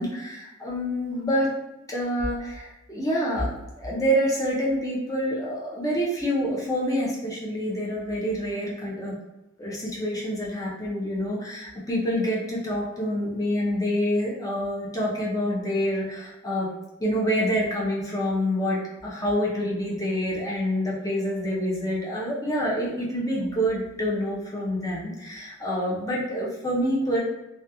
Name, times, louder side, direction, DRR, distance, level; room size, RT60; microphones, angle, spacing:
voice 1, 0.0-1.5 1.9-3.5 3.8-9.2 9.6-16.7 17.0-27.2, equal, 15° left, -4 dB, 0.5 m, -27 dB
2.3 x 2.2 x 2.7 m, 0.97 s
head